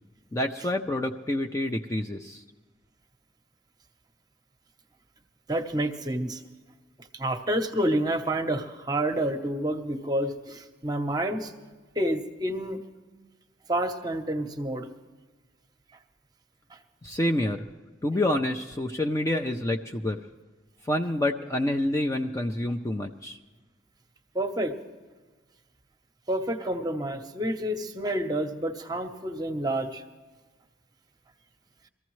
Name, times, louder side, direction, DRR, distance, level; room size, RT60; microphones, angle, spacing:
voice 1, 0.3-2.4 17.0-17.7 18.0-20.2 20.8-23.4, left 1 dB, 15° left, 3 dB, 0.4 m, -28 dB
voice 2, 5.5-6.4 7.1-11.5 12.0-12.8 13.7-14.9 24.3-24.7 26.3-30.0, right 1 dB, 20° right, 6 dB, 0.8 m, -29 dB
23.0 x 14.5 x 3.1 m, 1.3 s
head